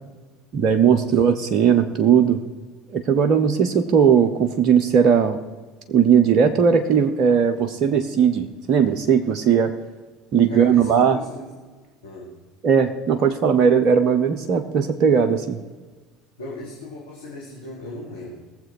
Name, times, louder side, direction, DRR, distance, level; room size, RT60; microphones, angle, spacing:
voice 1, 0.5-2.4 2.9-5.4 5.9-9.7 10.3-11.2 12.6-15.6, right 7 dB, 45° right, 7 dB, 0.8 m, -18 dB
voice 2, 10.5-11.5 12.0-12.3 16.4-18.3, left 2 dB, 80° left, -5 dB, 2.5 m, -37 dB
19.5 x 7.5 x 4.7 m, 1.3 s
figure-of-eight pair, 65°, 0 cm